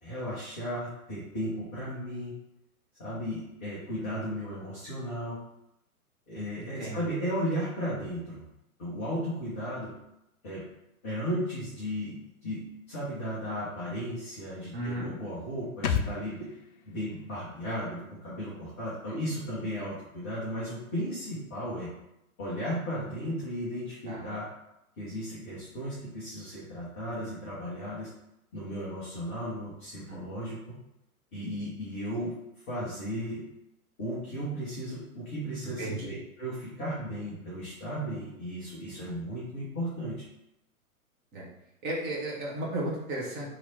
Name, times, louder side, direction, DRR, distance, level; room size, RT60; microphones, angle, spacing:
voice 1, 0.0-2.3 3.0-5.4 6.3-8.4 8.8-9.9 10.4-10.6 11.0-12.2 12.4-16.5 16.8-21.9 22.4-24.5 25.0-28.1 28.5-30.6 31.3-32.3 32.7-33.4 34.0-36.0 36.4-40.2, equal, 10° left, -9 dB, 0.4 m, -35 dB
voice 2, 4.0-4.3 6.6-7.1 14.7-15.1 19.1-19.2 24.0-24.3 30.1-30.2 35.6-36.1 41.3-41.4 41.8-43.5, right 1 dB, 20° right, -4 dB, 1.1 m, -35 dB
sound 1, 15.8-19.4 19.6-19.7, left 6 dB, 80° left, 0.5 m, -36 dB
3.2 x 3.0 x 3.9 m, 0.85 s
figure-of-eight pair, 110°, 44 cm